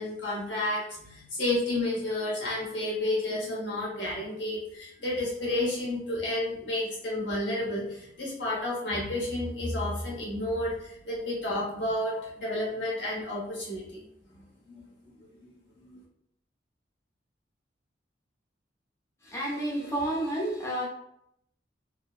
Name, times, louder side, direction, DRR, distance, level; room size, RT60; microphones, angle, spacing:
voice 1, 0.0-14.0 14.7-14.8 15.2-15.3 15.9-16.0, left 1 dB, 90° left, -5 dB, 1.0 m, -31 dB
voice 2, 19.2-20.8, right 1 dB, 15° left, -5 dB, 0.6 m, -30 dB
2.7 x 2.0 x 2.3 m, 0.74 s
head